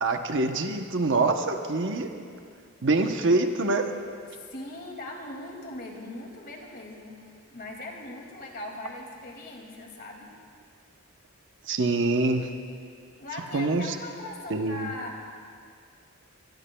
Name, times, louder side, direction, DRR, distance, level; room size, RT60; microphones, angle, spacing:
voice 1, 0.0-2.1 2.8-3.9 11.7-12.5 13.5-13.9 14.5-14.9, right 3 dB, 55° right, 6 dB, 0.8 m, -25 dB
voice 2, 4.3-10.3 13.2-15.2, left 2 dB, 45° left, 0 dB, 2.3 m, -40 dB
24.0 x 19.0 x 2.3 m, 2.2 s
head